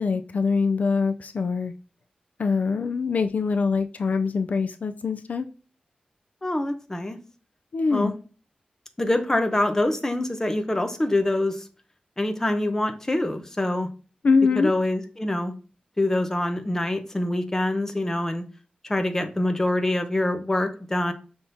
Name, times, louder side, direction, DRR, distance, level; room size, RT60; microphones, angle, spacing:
voice 1, 0.0-1.7 2.4-5.5 7.7-8.1 14.2-14.7, left 4 dB, 70° left, 8 dB, 0.3 m, -23 dB
voice 2, 6.4-7.2 7.9-8.1 9.0-11.6 12.2-13.9 14.6-15.5 16.0-18.4 18.8-21.1, left 1 dB, 20° left, 7 dB, 0.7 m, -25 dB
5.8 x 3.5 x 2.7 m, 0.36 s
wide cardioid pair, 120°, 3 cm